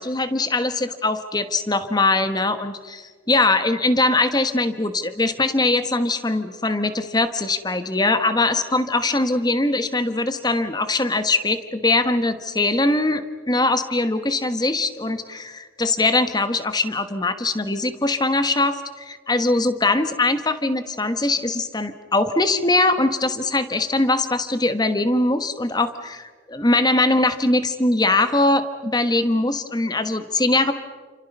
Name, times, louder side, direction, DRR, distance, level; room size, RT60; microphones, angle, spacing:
voice 1, 0.0-30.7, left 2 dB, 20° left, 10 dB, 1.2 m, -21 dB
29.5 x 27.5 x 5.4 m, 1.5 s
head